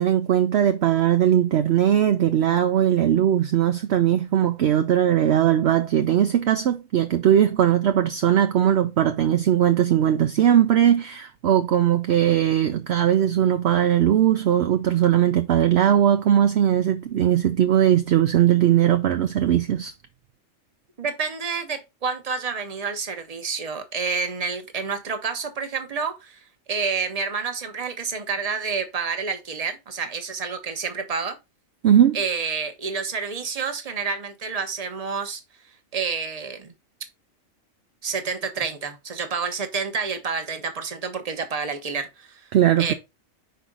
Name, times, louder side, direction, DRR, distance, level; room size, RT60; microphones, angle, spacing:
voice 1, 0.0-19.9 31.8-32.2 42.5-42.9, right 10 dB, 65° right, 0.8 m, -19 dB
voice 2, 21.0-26.4 26.7-31.4 32.1-35.4 35.9-36.7 38.0-42.5 42.8-42.9, right 5 dB, 30° right, 1.0 m, -29 dB
5.6 x 4.4 x 3.8 m
omnidirectional pair, 1.4 m